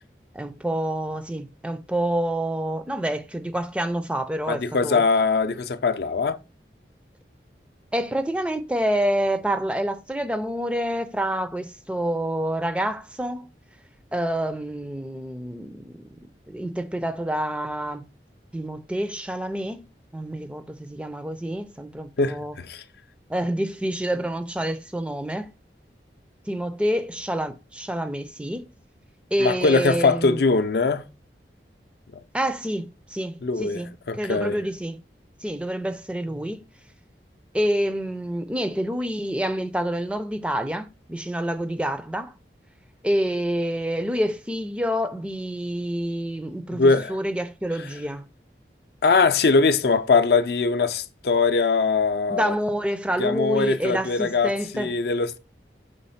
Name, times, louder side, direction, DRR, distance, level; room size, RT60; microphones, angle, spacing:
voice 1, 0.3-5.0 7.9-13.5 14.1-16.0 16.5-18.0 18.5-19.8 20.1-22.5 23.3-25.5 26.5-28.7 29.3-30.4 32.3-33.9 34.2-35.0 35.4-36.6 37.5-42.3 43.0-48.2 52.3-54.9, equal, 5° right, 0.4 m, -27 dB
voice 2, 4.5-6.4 22.2-22.8 29.4-31.0 33.4-34.6 46.7-47.2 47.8-47.9 49.0-52.6 53.2-55.4, left 4 dB, 65° left, 0.5 m, -22 dB
5.2 x 3.5 x 5.6 m
head